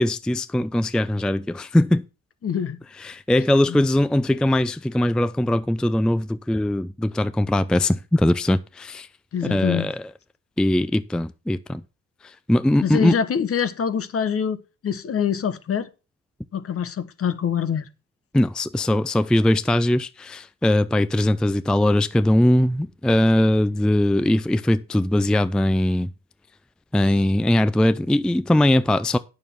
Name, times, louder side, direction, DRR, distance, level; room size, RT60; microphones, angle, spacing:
voice 1, 0.0-2.1 3.0-9.1 9.4-10.0 10.6-11.8 12.5-13.2 18.3-26.1 26.9-29.2, left 1 dB, 5° left, 0.4 m, -20 dB
voice 2, 2.4-2.8 3.7-3.8 9.3-9.9 12.8-14.6 14.8-15.9 16.5-17.8, left 7 dB, 50° left, 1.1 m, -25 dB
9.2 x 6.6 x 5.4 m
cardioid pair, 90°, 30 cm